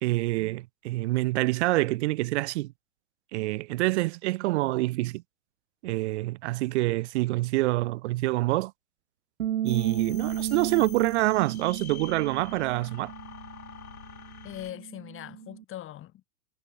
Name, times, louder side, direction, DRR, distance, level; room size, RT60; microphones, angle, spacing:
voice 1, 0.0-2.7 3.3-5.2 5.8-8.7 9.6-13.1, right 19 dB, 50° right, 1.9 m, -26 dB
Bass guitar, 9.4-15.6, right 11 dB, 65° right, 6.5 m, -34 dB
sound 1, 9.7-14.7, left 8 dB, 75° left, 5.4 m, -45 dB
voice 2, 14.4-16.3, left 13 dB, 30° left, 5.6 m, -41 dB
hypercardioid pair, 110°, 44 cm